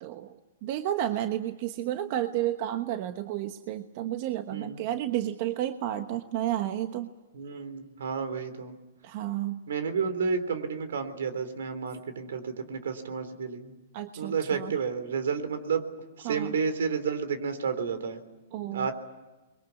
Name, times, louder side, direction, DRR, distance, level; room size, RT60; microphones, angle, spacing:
voice 1, 0.0-7.1 9.0-9.6 13.9-14.7 16.2-16.5 18.5-18.9, right 12 dB, 45° right, 8 dB, 1.2 m, -31 dB
voice 2, 4.5-4.8 7.3-8.7 9.7-13.7 14.2-15.9 16.2-18.2 18.6-18.9, right 5 dB, 80° right, 10 dB, 3.8 m, -31 dB
30.0 x 22.5 x 8.4 m, 1.1 s
hypercardioid pair, 145°, 0 cm